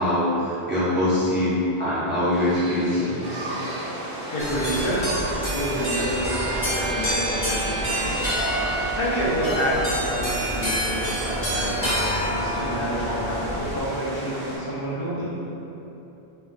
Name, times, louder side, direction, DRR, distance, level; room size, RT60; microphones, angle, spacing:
voice 1, 0.0-3.5, left 1 dB, 15° right, -11 dB, 0.4 m, -23 dB
sound 1, 2.3-9.8, right 1 dB, 85° right, 0.9 m, -35 dB
sound 2, 3.2-14.6, right 1 dB, 60° right, 0.7 m, -34 dB
voice 2, 4.3-15.4, equal, 60° left, -7 dB, 0.8 m, -29 dB
sound 3, 4.4-13.8, right 1 dB, 30° left, 0.7 m, -28 dB
2.3 x 2.3 x 3.8 m, 2.9 s
omnidirectional pair, 1.1 m